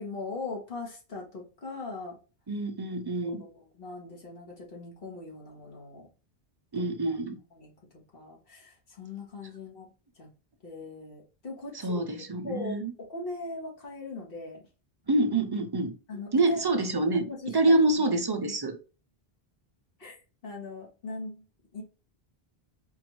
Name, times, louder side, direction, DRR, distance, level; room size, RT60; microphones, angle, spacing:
voice 1, 0.0-2.2 3.2-6.1 6.7-7.2 7.5-10.3 10.6-12.0 12.4-14.7 16.1-16.6 17.0-18.1 18.5-18.6 20.0-20.2 20.4-21.4 21.7-21.8, left 3 dB, 65° left, 1.5 m, -40 dB
voice 2, 2.5-3.4 6.7-7.4 11.7-12.9 15.1-16.0 16.3-18.8, right 2 dB, 35° right, 0.4 m, -26 dB
4.5 x 2.5 x 2.9 m
omnidirectional pair, 1.0 m